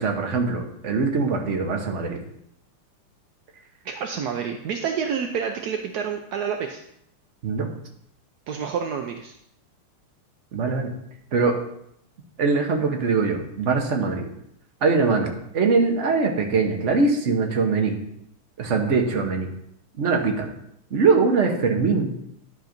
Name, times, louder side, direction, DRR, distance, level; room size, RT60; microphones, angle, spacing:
voice 1, 0.0-2.2 7.4-7.7 10.5-10.9 11.3-11.5 12.4-14.3 14.8-18.0 18.6-19.5 20.0-20.5 20.9-22.1, right 4 dB, 45° right, 2 dB, 1.2 m, -22 dB
voice 2, 3.8-6.8 8.5-9.4, right 7 dB, 75° right, 4 dB, 0.9 m, -28 dB
10.5 x 4.0 x 5.1 m, 0.74 s
omnidirectional pair, 2.4 m